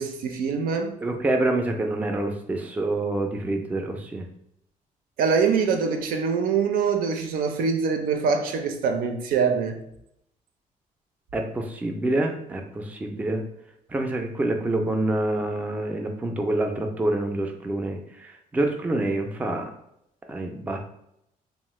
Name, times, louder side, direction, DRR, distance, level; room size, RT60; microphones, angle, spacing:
voice 1, 0.0-0.9 5.2-9.8, right 5 dB, 85° right, 5 dB, 0.5 m, -24 dB
voice 2, 1.0-4.2 11.3-13.4 13.9-19.7 20.3-20.8, right 2 dB, 10° right, 4 dB, 0.3 m, -27 dB
3.1 x 2.0 x 3.0 m, 0.77 s
cardioid pair, 145°, 15 cm